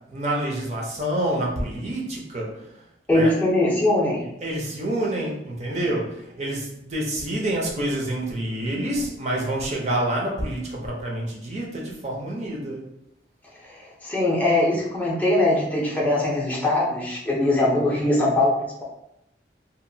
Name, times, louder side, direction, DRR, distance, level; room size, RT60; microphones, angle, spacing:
voice 1, 0.1-2.5 3.1-3.3 4.4-12.8, right 1 dB, 40° right, -2 dB, 0.7 m, -27 dB
voice 2, 3.1-4.3 13.6-18.8, left 1 dB, 10° left, -5 dB, 0.6 m, -21 dB
2.9 x 2.5 x 2.7 m, 0.82 s
head